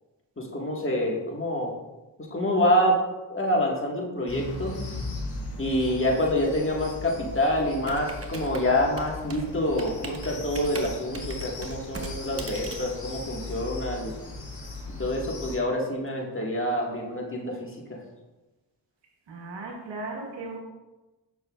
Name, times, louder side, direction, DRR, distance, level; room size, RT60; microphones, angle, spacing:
voice 1, 0.4-1.7 2.3-3.0 3.3-4.8 5.6-14.1 15.0-18.0, left 1 dB, 30° left, -2 dB, 1.8 m, -26 dB
sound 1, 4.3-15.6, left 2 dB, 55° left, 1.9 m, -38 dB
Computer keyboard, 7.8-13.8, right 2 dB, 35° right, 1.0 m, -40 dB
voice 2, 19.3-20.6, right 3 dB, 85° right, 0 dB, 1.5 m, -36 dB
7.8 x 6.2 x 2.5 m, 1.1 s
cardioid pair, 55°, 42 cm